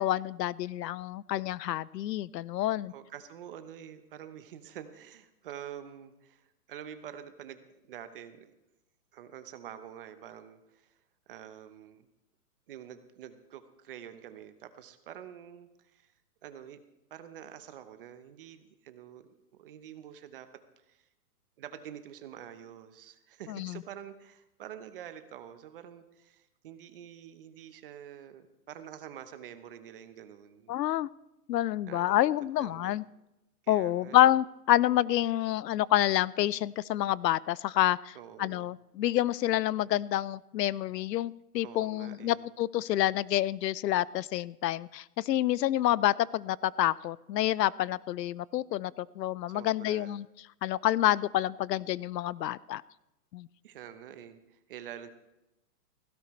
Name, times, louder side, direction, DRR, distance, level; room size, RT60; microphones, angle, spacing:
voice 1, 0.0-2.9 23.5-23.8 30.7-31.1 31.5-33.0 33.7-50.2 50.6-52.8 53.3-53.5, left 13 dB, 85° left, 22 dB, 0.6 m, -28 dB
voice 2, 2.9-8.5 9.1-10.9 11.3-12.1 12.7-16.1 16.4-16.8 17.1-19.3 19.6-20.5 20.9-21.1 21.6-30.8 31.9-33.0 33.6-34.3 38.1-38.7 41.6-42.4 49.5-50.2 53.6-55.1, right 10 dB, 35° right, 11 dB, 0.9 m, -47 dB
16.5 x 16.0 x 3.2 m, 0.92 s
hypercardioid pair, 160°, 48 cm